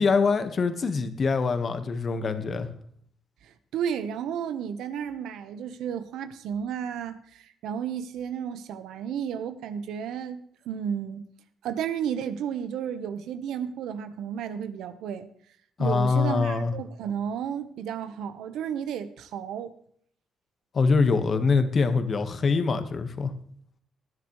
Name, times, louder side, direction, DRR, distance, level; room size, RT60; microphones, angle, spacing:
voice 1, 0.0-2.7 15.8-16.7 20.7-23.3, left 4 dB, 45° left, 1.5 m, -24 dB
voice 2, 3.4-11.2 11.6-15.3 15.8-19.7, right 8 dB, 85° right, 1.2 m, -33 dB
19.0 x 10.5 x 3.3 m
cardioid pair, 90°, 0 cm